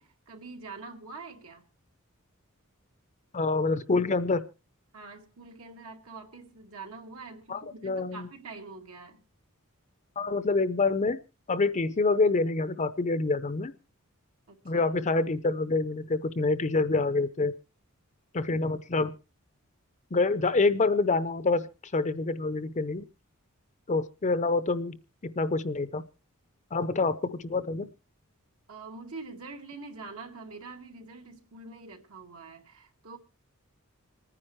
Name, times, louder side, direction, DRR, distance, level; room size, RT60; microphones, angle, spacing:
voice 1, 0.0-1.6 4.9-9.2 14.5-14.8 28.7-33.2, right 3 dB, 75° right, 3 dB, 2.2 m, -45 dB
voice 2, 3.3-4.5 7.5-8.3 10.2-11.2 11.5-13.7 14.6-17.5 18.3-19.1 20.1-21.7 21.9-23.1 23.9-26.0 26.7-27.9, left 3 dB, 35° left, 13 dB, 0.6 m, -27 dB
26.5 x 9.9 x 3.1 m, 0.31 s
head